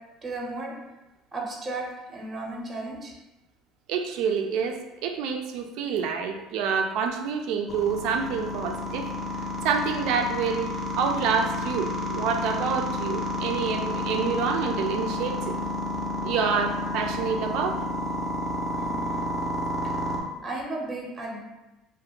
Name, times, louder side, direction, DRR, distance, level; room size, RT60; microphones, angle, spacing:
voice 1, 0.2-0.8 1.3-3.1 18.8-19.5 20.4-21.4, right 2 dB, 25° right, -1 dB, 0.6 m, -35 dB
voice 2, 3.9-9.1 9.6-15.6 16.2-17.8, right 6 dB, 75° right, 4 dB, 0.3 m, -27 dB
sound 1, 7.7-20.2, left 1 dB, 25° left, 0.4 m, -30 dB
2.4 x 2.1 x 2.9 m, 1.0 s
cardioid pair, 110°, 0 cm